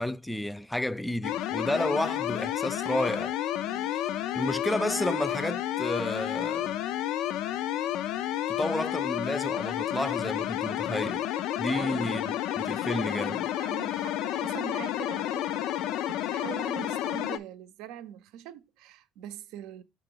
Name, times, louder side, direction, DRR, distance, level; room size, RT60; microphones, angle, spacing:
voice 1, 0.0-3.3 4.3-6.7 8.5-11.3 11.6-13.5, left 1 dB, 10° left, 0.4 m, -31 dB
sound 1, 1.2-17.4, left 12 dB, 80° left, 0.4 m, -31 dB
voice 2, 11.7-12.1 13.6-19.8, right 10 dB, 85° right, 0.5 m, -43 dB
5.9 x 3.1 x 5.3 m
supercardioid pair, 80°, 0 cm